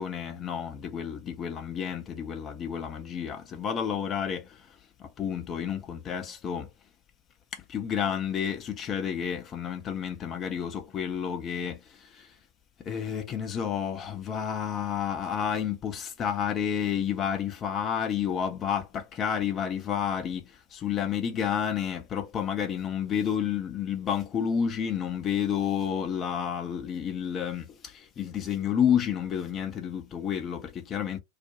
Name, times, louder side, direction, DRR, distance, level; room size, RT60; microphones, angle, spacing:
voice 1, 0.0-4.7 5.0-6.7 7.5-12.3 12.8-31.2, left 8 dB, 25° left, 0.6 m, -30 dB
2.4 x 2.2 x 2.9 m
figure-of-eight pair, 90°, 0 cm